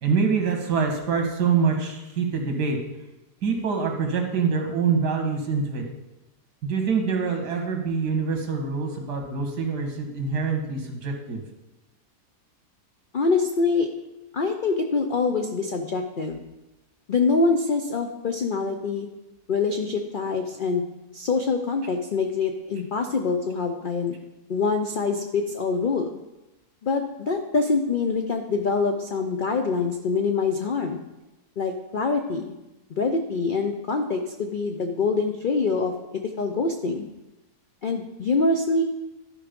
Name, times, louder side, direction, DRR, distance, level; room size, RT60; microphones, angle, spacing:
voice 1, 0.0-2.8 3.4-5.8 6.6-11.4, right 5 dB, 80° right, 3 dB, 2.0 m, -25 dB
voice 2, 13.1-13.9 14.3-16.4 17.1-19.1 19.5-20.8 21.1-24.2 24.5-26.1 26.8-31.0 31.6-32.5 32.9-37.1 37.8-38.8, left 4 dB, 80° left, 5 dB, 0.4 m, -25 dB
12.0 x 4.9 x 5.1 m, 1.0 s
omnidirectional pair, 1.7 m